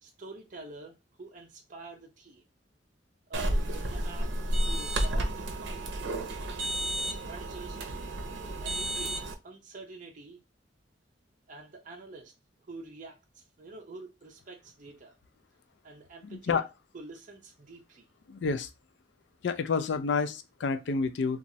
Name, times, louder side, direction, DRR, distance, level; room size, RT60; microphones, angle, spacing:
voice 1, 0.0-2.4 3.3-4.3 4.7-6.0 7.0-7.8 8.4-10.4 11.5-12.3 12.7-15.2 15.8-16.7 16.9-18.1, right 3 dB, 45° right, 0.6 m, -47 dB
sound 1, 3.3-9.3, right 1 dB, 90° right, 0.6 m, -31 dB
voice 2, 16.2-16.7 18.3-18.7 19.4-21.4, left 5 dB, 70° left, 0.4 m, -29 dB
3.0 x 2.3 x 2.6 m
head